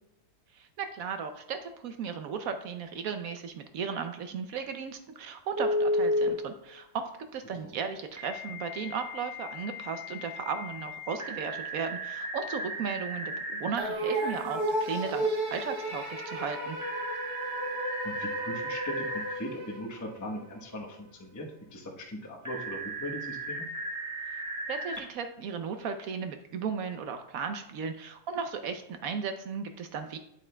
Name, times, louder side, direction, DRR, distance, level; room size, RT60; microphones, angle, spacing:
voice 1, 0.5-16.8 24.7-30.2, right 6 dB, 70° right, 7 dB, 1.0 m, -36 dB
Telephone, 5.6-6.3 8.1-13.7 16.8-19.3 22.4-25.0, equal, 15° right, 0.9 m, -34 dB
sound 1, 13.8-20.3, right 1 dB, 90° right, 2.2 m, -33 dB
voice 2, 18.0-23.7, equal, 15° left, -1 dB, 0.8 m, -39 dB
9.7 x 8.0 x 2.2 m, 0.79 s
omnidirectional pair, 1.7 m